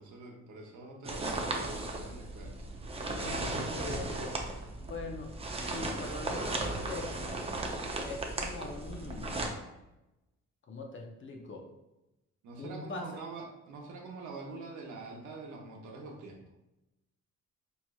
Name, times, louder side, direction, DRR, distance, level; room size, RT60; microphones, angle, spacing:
voice 1, 0.0-2.5 12.4-16.4, right 3 dB, 80° right, 1 dB, 0.9 m, -45 dB
sound 1, 1.0-9.5, right 2 dB, 20° right, 0.6 m, -36 dB
voice 2, 3.1-4.4 4.8-5.3 5.6-7.1 8.0-9.5 10.7-11.7 12.6-13.1, left 2 dB, 40° left, 1 dB, 0.7 m, -42 dB
4.5 x 2.8 x 2.3 m, 0.96 s
cardioid pair, 90°, 30 cm